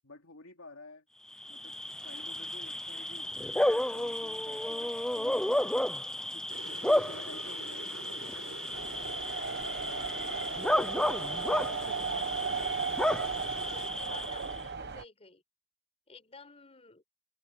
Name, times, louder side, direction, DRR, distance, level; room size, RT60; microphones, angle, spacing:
voice 1, 0.0-1.0 1.5-5.9 6.3-8.8 9.7-11.1 11.6-12.6, left 2 dB, 80° left, 2.6 m, -52 dB
Bark / Cricket, 1.3-14.6, left 1 dB, 5° left, 0.3 m, -32 dB
sound 1, 6.5-13.9, right 3 dB, 80° right, 5.0 m, -46 dB
sound 2, 8.7-15.0, right 5 dB, 55° right, 1.2 m, -36 dB
voice 2, 13.6-15.4 16.1-17.1, left 4 dB, 30° left, 4.3 m, -53 dB
head